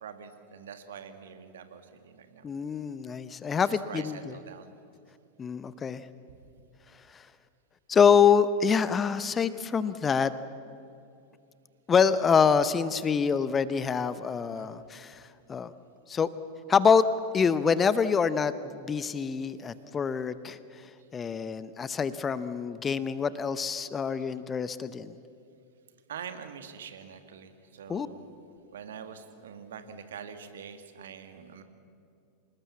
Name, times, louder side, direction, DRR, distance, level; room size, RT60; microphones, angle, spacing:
voice 1, 0.0-2.5 3.5-4.7 14.5-14.7 26.1-28.4 28.7-31.6, right 7 dB, 60° right, 8 dB, 1.8 m, -44 dB
voice 2, 2.4-4.3 5.4-6.0 7.9-10.3 11.9-15.2 15.5-15.7 16.1-16.3 16.7-17.0 17.3-20.6 21.1-25.1 27.9-28.1, left 6 dB, 20° left, 15 dB, 0.8 m, -25 dB
26.5 x 20.0 x 7.3 m, 2.5 s
figure-of-eight pair, 90°, 0 cm